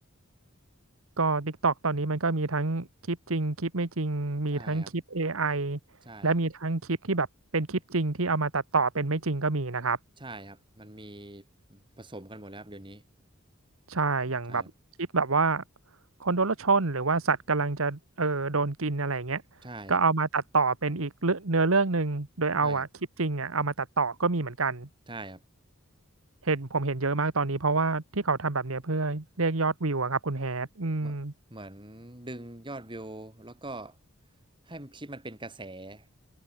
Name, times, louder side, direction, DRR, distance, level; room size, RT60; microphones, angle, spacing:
voice 1, 1.2-5.8 6.2-7.3 7.5-10.0 13.9-14.6 15.1-15.6 16.2-19.4 19.9-22.9 23.2-24.9 26.4-31.3, right 3 dB, 75° right, 1.5 m, -27 dB
voice 2, 4.5-4.9 6.1-6.3 10.2-11.4 11.7-13.0 14.5-14.7 19.6-20.0 22.6-22.8 25.1-25.4 31.0-31.2 31.5-34.0 34.7-36.1, right 2 dB, 25° right, 4.2 m, -43 dB
head